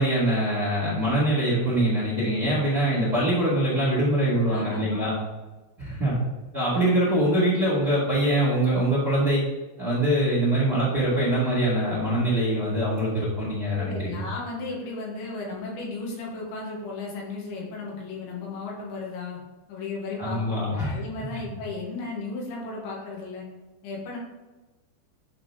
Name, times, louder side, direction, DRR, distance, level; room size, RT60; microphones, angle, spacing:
voice 1, 0.0-5.1 5.8-6.2 6.5-9.4 9.8-14.2 20.2-21.0, right 1 dB, 35° right, -7 dB, 1.5 m, -23 dB
voice 2, 4.5-5.2 13.7-19.4 19.7-23.5 23.8-24.2, left 3 dB, 70° left, -3 dB, 3.8 m, -35 dB
10.0 x 4.0 x 4.8 m, 1.2 s
omnidirectional pair, 5.5 m